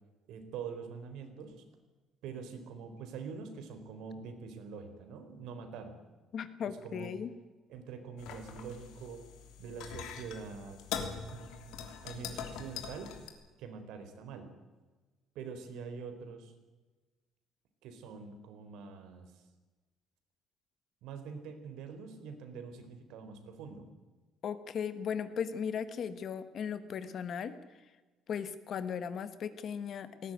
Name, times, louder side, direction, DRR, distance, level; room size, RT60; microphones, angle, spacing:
voice 1, 0.3-1.6 2.2-6.0 6.7-7.1 7.7-9.2 9.6-10.8 11.3-13.1 13.6-14.5 15.3-16.5 17.8-19.4 21.0-23.9, right 5 dB, 70° right, 7 dB, 3.9 m, -45 dB
voice 2, 6.3-7.3 24.4-27.6 28.3-30.3, left 7 dB, 40° left, 12 dB, 1.3 m, -37 dB
sound 1, 8.2-13.3, left 7 dB, 75° left, 3.2 m, -43 dB
19.5 x 17.5 x 9.4 m, 1.2 s
cardioid pair, 180°, 0 cm